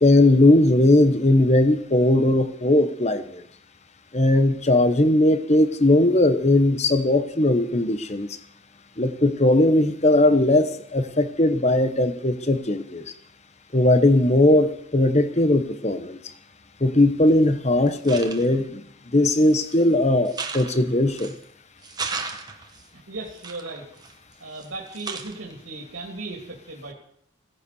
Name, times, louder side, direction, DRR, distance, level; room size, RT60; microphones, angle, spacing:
voice 1, 0.0-3.4 4.1-8.3 9.0-13.0 13.7-16.2 16.8-18.8 19.1-21.3, left 1 dB, 35° left, 11 dB, 1.1 m, -19 dB
sound 1, 17.3-17.4 17.9-18.7 19.3-19.8 20.2-21.4 21.8-22.8 23.4-24.7 24.9-25.5, right 4 dB, 20° right, 1.3 m, -35 dB
voice 2, 22.5-23.9 24.4-26.9, right 2 dB, 85° right, -1 dB, 2.9 m, -37 dB
17.0 x 10.0 x 7.0 m, 0.68 s
head